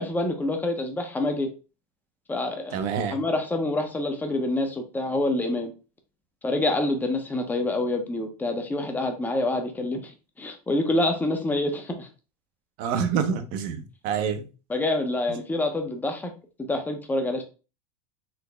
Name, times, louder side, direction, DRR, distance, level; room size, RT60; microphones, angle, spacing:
voice 1, 0.0-1.5 2.3-2.8 3.1-5.7 6.4-10.1 10.4-12.1 14.7-16.3 16.7-17.4, left 2 dB, 10° left, 0.6 m, -26 dB
voice 2, 2.7-3.2 12.8-14.5, right 7 dB, 50° right, 0.6 m, -27 dB
4.0 x 2.0 x 3.3 m
supercardioid pair, 135°, 19 cm